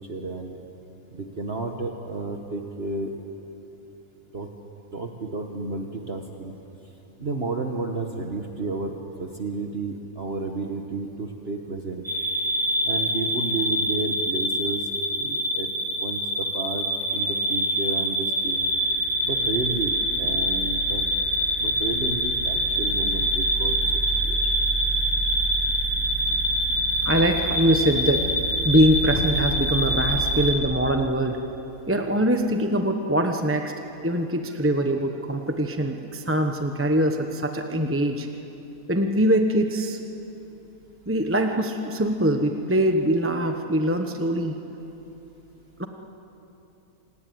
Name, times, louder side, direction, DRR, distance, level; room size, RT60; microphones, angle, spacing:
voice 1, 0.1-0.6 1.1-3.1 4.3-4.5 4.9-6.5 7.2-12.0 12.8-15.7 16.0-16.9 17.1-18.7 19.2-21.1 21.6-23.8 24.2-24.6, right 3 dB, 45° right, 3 dB, 1.5 m, -32 dB
sound 1, 12.0-30.5, equal, 5° left, 3.5 m, -25 dB
voice 2, 27.0-28.3 28.6-31.4 31.9-33.7 34.0-38.3 38.9-40.0 41.1-44.6 45.8-45.9, right 1 dB, 10° right, 5 dB, 1.0 m, -23 dB
28.0 x 18.5 x 9.4 m, 3.0 s
omnidirectional pair, 1.5 m